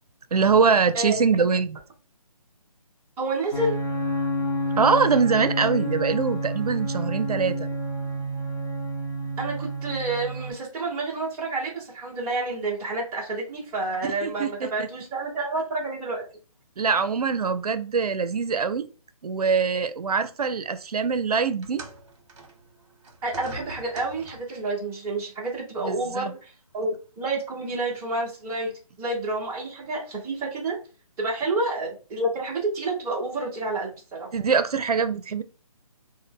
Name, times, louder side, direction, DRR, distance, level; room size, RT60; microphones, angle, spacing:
voice 1, 0.3-1.8 4.8-7.7 14.2-14.7 16.8-18.8 19.2-21.8 25.8-26.3 34.3-35.4, right 5 dB, 85° right, 0.5 m, -23 dB
voice 2, 3.2-3.8 9.4-16.2 23.2-28.7 29.0-30.8 31.2-34.3, right 2 dB, 10° right, 0.8 m, -29 dB
sound 1, 3.5-10.5, equal, 45° left, 1.0 m, -29 dB
sound 2, 21.6-24.7 25.7-25.8 26.7-26.8, right 2 dB, 50° right, 0.9 m, -43 dB
2.6 x 2.1 x 3.5 m
figure-of-eight pair, 155°, 19 cm